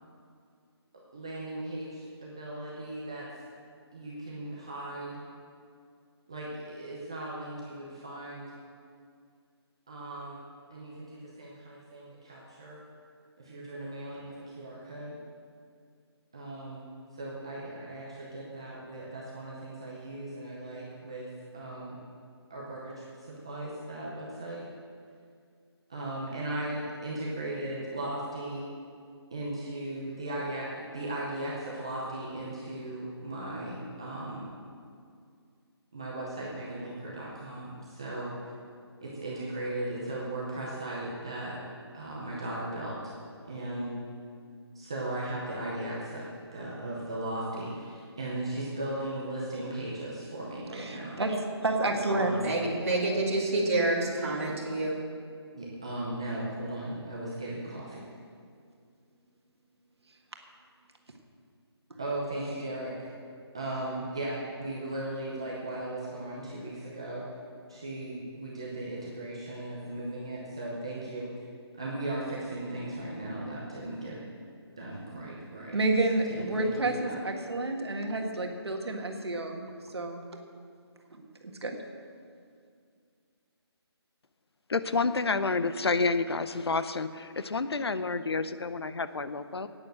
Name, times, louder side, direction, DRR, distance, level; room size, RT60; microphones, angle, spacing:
voice 1, 1.1-3.3 3.9-5.2 6.3-8.5 9.9-10.4 10.7-12.8 13.4-15.2 16.3-22.0 22.5-24.6 25.9-28.7 29.3-34.4 35.9-38.3 39.0-41.6 41.9-43.1 43.5-43.9 44.7-46.3 46.5-51.2 51.9-52.4 55.5-58.0 62.0-63.1 63.5-67.2 67.7-71.3 71.8-74.2 74.8-75.8 76.1-77.2, right 1 dB, 10° right, -6 dB, 0.6 m, -37 dB
voice 2, 50.7-52.6 75.7-80.2 81.1-81.8, right 2 dB, 70° right, 2 dB, 1.7 m, -30 dB
voice 3, 52.4-55.0, right 2 dB, 30° right, -5 dB, 2.3 m, -28 dB
voice 4, 84.7-89.7, left 4 dB, 65° left, 12 dB, 0.7 m, -29 dB
10.5 x 9.2 x 7.7 m, 2.3 s
hypercardioid pair, 180°, 14 cm